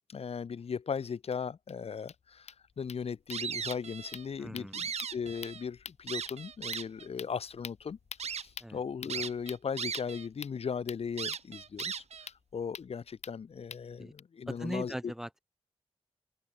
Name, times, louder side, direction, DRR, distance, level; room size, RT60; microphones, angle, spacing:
voice 1, 0.1-15.1, left 6 dB, 65° left, 2.7 m, -38 dB
sound 1, 1.0-1.1 1.3-1.4 1.7-1.8 2.0-14.2, left 7 dB, 85° left, 2.7 m, -49 dB
sound 2, 3.3-4.2 4.6-5.6 6.1-7.1 7.6-7.7 8.2-8.4 9.1-10.3 10.6-10.7 11.2-12.3, right 7 dB, 80° right, 1.8 m, -37 dB
voice 2, 4.4-4.7 8.6-8.8 14.0-14.1 14.5-15.4, equal, 5° right, 2.6 m, -39 dB
open air
wide cardioid pair, 130°, 11 cm